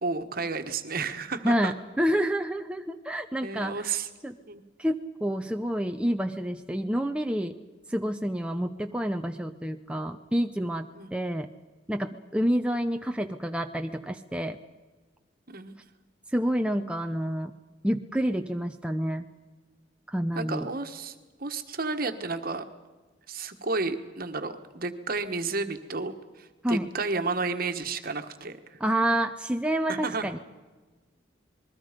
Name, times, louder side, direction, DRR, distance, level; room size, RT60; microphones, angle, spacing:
voice 1, 0.0-1.7 3.4-4.1 4.5-4.6 11.0-11.1 15.5-15.7 20.3-22.6 23.3-28.8 29.9-30.3, right 3 dB, 50° right, 8 dB, 1.4 m, -32 dB
voice 2, 1.4-3.8 4.2-4.4 4.8-7.6 7.9-11.5 11.9-14.6 16.3-17.5 17.8-19.2 20.1-20.7 26.6-26.9 28.8-30.4, equal, 5° right, 5 dB, 0.6 m, -28 dB
27.0 x 21.5 x 5.2 m, 1.3 s
head